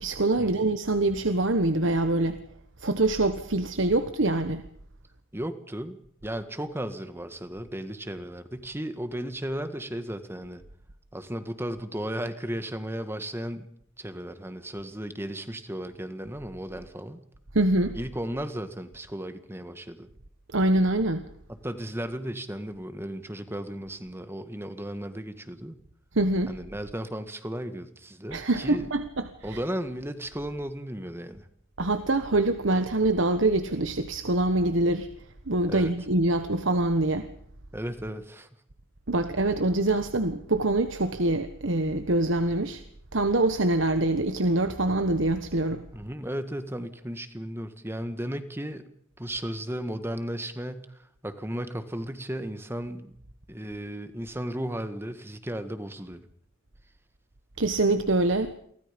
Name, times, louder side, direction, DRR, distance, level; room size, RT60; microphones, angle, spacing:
voice 1, 0.0-2.4 2.8-4.6 17.5-17.9 20.5-21.2 26.1-26.5 28.3-29.6 31.8-35.1 35.5-37.3 39.1-42.8 43.1-45.8 57.6-58.5, right 2 dB, 65° right, 9 dB, 1.4 m, -24 dB
voice 2, 5.3-6.0 6.2-10.6 11.1-13.7 14.0-17.2 17.9-20.1 21.6-25.8 26.5-28.9 29.4-31.5 35.7-35.9 37.7-38.5 45.9-48.8 49.2-53.2 53.5-56.2, right 1 dB, 10° right, 10 dB, 1.8 m, -35 dB
29.0 x 24.0 x 5.3 m, 0.67 s
head